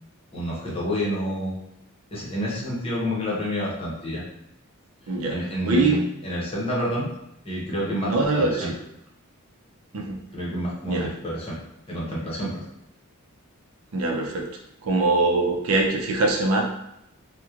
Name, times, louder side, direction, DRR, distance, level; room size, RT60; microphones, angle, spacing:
voice 1, 0.3-1.5 2.1-4.2 5.3-7.1 7.4-8.7 10.3-11.6 11.9-12.6, equal, 25° left, -6 dB, 0.8 m, -28 dB
voice 2, 5.7-6.0 8.1-8.7 9.9-10.2 10.9-11.1 13.9-14.5 14.8-16.6, right 3 dB, 70° right, 1 dB, 0.5 m, -22 dB
3.0 x 2.1 x 2.4 m, 0.80 s
head